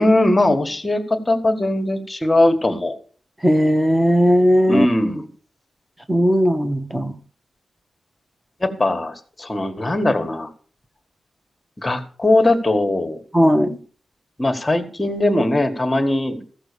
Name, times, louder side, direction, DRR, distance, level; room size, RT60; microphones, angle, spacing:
voice 1, 0.0-3.0 4.7-5.3 8.6-10.5 11.8-13.2 14.4-16.5, left 1 dB, 20° left, 1.6 m, -20 dB
voice 2, 3.4-4.9 6.1-7.1 13.3-13.8, equal, 10° right, 1.2 m, -17 dB
15.0 x 5.9 x 6.8 m
wide cardioid pair, 105°, 0 cm